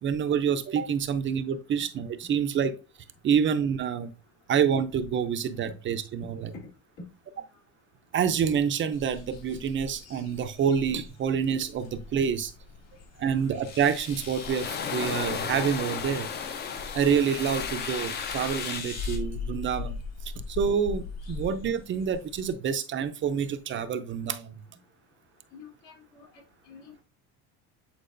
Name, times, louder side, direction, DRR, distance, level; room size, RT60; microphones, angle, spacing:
voice 1, 0.0-2.7 3.2-4.1 4.5-6.5 8.1-12.5 13.2-16.3 16.9-24.6, right 7 dB, 35° right, 10 dB, 0.5 m, -27 dB
sound 1, 8.9-22.5, left 4 dB, 45° left, 2.0 m, -41 dB
sound 2, 12.8-12.9 13.6-19.2, left 4 dB, 65° left, 3.2 m, -42 dB
sound 3, 13.8-18.8, left 7 dB, 30° left, 0.5 m, -34 dB
voice 2, 25.5-26.3 26.7-27.0, left 6 dB, 85° left, -2 dB, 3.2 m, -50 dB
8.4 x 4.6 x 2.5 m, 0.32 s
cardioid pair, 145°, 35 cm